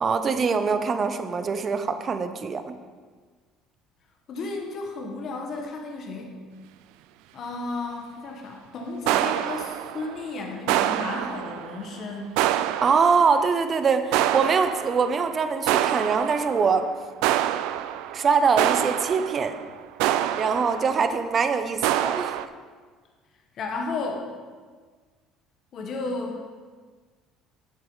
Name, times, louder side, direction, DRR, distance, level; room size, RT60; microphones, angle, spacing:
voice 1, 0.0-2.7 12.8-16.8 18.1-19.5 20.4-22.4, right 5 dB, 35° right, 9 dB, 0.6 m, -23 dB
voice 2, 4.3-6.3 7.3-12.3 23.5-24.3 25.7-26.5, left 3 dB, 50° left, 2 dB, 1.2 m, -33 dB
sound 1, 9.1-10.3 10.7-11.9 12.4-13.5 14.1-15.3 15.7-16.8 17.2-21.2 21.8-22.5, right 12 dB, 80° right, 0.3 m, -26 dB
8.1 x 8.0 x 4.0 m, 1.5 s
cardioid pair, 105°, 0 cm